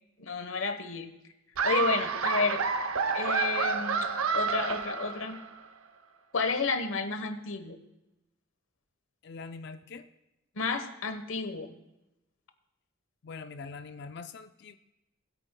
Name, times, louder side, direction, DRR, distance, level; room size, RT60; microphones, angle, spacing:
voice 1, 0.2-1.1 1.6-2.6 3.1-4.1 4.3-5.4 6.3-7.7 10.6-11.7, left 4 dB, 75° left, 8 dB, 1.1 m, -31 dB
Laughter, 1.6-5.6, right 5 dB, 80° right, 0.7 m, -29 dB
voice 2, 9.2-10.1 13.2-14.8, left 4 dB, 50° left, 9 dB, 0.4 m, -43 dB
20.0 x 8.9 x 2.2 m, 0.95 s
head